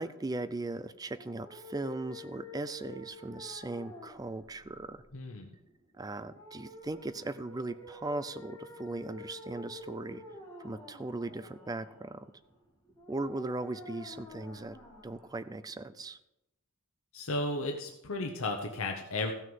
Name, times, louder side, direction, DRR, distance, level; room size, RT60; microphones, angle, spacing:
voice 1, 0.0-5.0 6.0-10.2 10.6-12.3 13.1-14.8 15.0-16.2, right 2 dB, 15° right, 14 dB, 0.4 m, -38 dB
sound 1, 1.2-16.1, left 1 dB, 15° left, 2.3 m, -50 dB
voice 2, 5.1-5.5 17.1-19.3, left 2 dB, 65° left, 2 dB, 1.0 m, -34 dB
15.0 x 6.3 x 5.4 m, 0.89 s
head